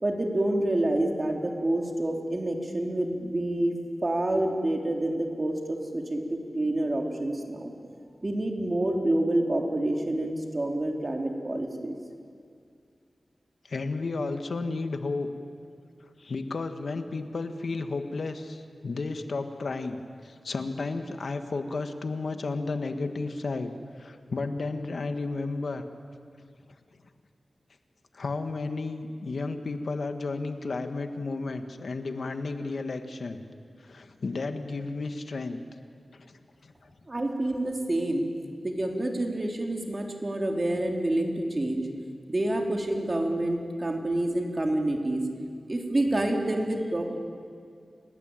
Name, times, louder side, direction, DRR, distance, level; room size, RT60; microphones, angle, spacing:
voice 1, 0.0-3.7 4.0-7.7 8.2-11.9 37.1-38.3 38.6-41.9 42.3-45.2 45.7-47.2, right 1 dB, 35° right, 2 dB, 3.9 m, -28 dB
voice 2, 13.7-15.3 16.2-20.0 20.2-23.7 24.0-25.8 28.1-33.4 33.8-35.6 36.1-36.9, left 3 dB, 75° left, 7 dB, 1.7 m, -33 dB
29.0 x 19.0 x 9.1 m, 2.2 s
wide cardioid pair, 60°, 0 cm